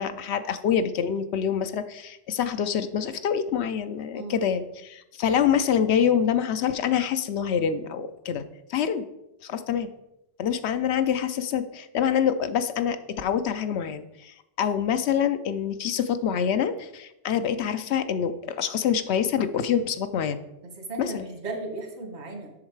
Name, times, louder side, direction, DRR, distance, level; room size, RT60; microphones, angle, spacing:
voice 1, 0.0-8.4 8.7-9.1 9.4-9.9 10.4-20.4 21.0-21.3, left 8 dB, 75° left, 10 dB, 0.9 m, -26 dB
voice 2, 4.2-4.5 20.8-22.5, right 2 dB, 75° right, 3 dB, 1.9 m, -36 dB
7.5 x 6.4 x 4.6 m, 0.88 s
omnidirectional pair, 1.1 m